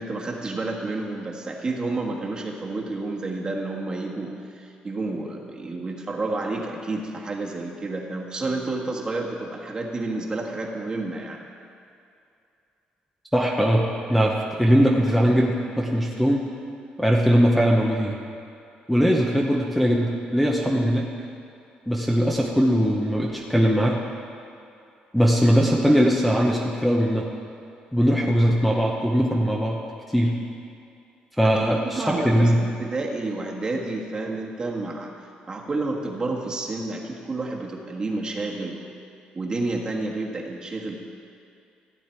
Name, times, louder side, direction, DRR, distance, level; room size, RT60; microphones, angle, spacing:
voice 1, 0.0-11.4 31.4-32.5 32.8-35.1 35.5-38.9 39.3-41.0, right 2 dB, 30° right, -1 dB, 1.5 m, -30 dB
voice 2, 13.3-13.8 14.1-16.5 17.0-18.2 18.9-21.1 21.9-24.0 25.1-27.3 27.9-29.8 30.1-30.4 31.4-32.6, equal, 5° left, -1 dB, 0.9 m, -20 dB
15.0 x 8.6 x 4.5 m, 2.5 s
cardioid pair, 115°, 3 cm